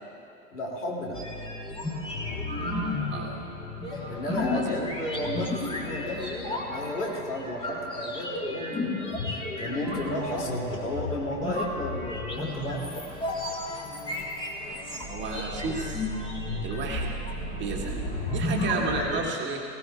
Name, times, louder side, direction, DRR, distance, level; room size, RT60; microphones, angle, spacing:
voice 1, 0.5-1.2 3.9-13.1, left 1 dB, 75° left, -2 dB, 2.7 m, -33 dB
sound 1, 1.1-19.2, left 2 dB, 10° left, 1.5 m, -33 dB
voice 2, 4.3-5.0 15.1-16.1 16.6-17.2 17.5-18.0 18.2-19.6, right 3 dB, 25° right, 0 dB, 1.6 m, -32 dB
19.0 x 17.5 x 2.4 m, 2.5 s
figure-of-eight pair, 95°, 47 cm